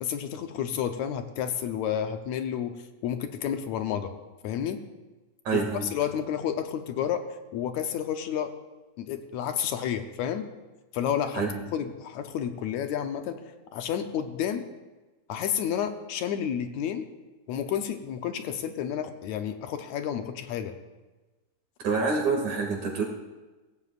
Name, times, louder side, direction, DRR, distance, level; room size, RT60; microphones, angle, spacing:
voice 1, 0.0-4.1 4.4-4.8 5.5-7.3 7.5-8.5 9.0-10.5 10.9-11.5 11.7-13.4 13.7-14.7 15.3-17.1 17.5-20.8, left 9 dB, 75° left, 7 dB, 2.0 m, -30 dB
voice 2, 5.5-5.9 11.3-11.6 21.8-23.0, right 4 dB, 70° right, 0 dB, 3.6 m, -27 dB
22.5 x 16.5 x 2.5 m, 1.2 s
omnidirectional pair, 3.4 m